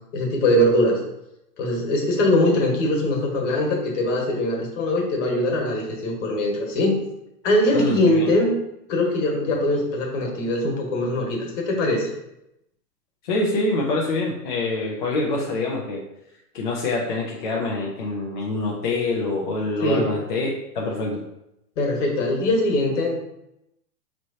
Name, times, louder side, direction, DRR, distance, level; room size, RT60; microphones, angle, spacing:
voice 1, 0.1-1.0 1.6-6.9 7.4-8.5 8.9-12.1 19.8-20.1 21.8-23.2, left 1 dB, 50° left, 0 dB, 1.4 m, -22 dB
voice 2, 7.7-8.3 13.2-16.0 16.5-21.2, left 2 dB, 35° left, -2 dB, 0.4 m, -25 dB
5.1 x 3.2 x 2.7 m, 0.84 s
hypercardioid pair, 140°, 47 cm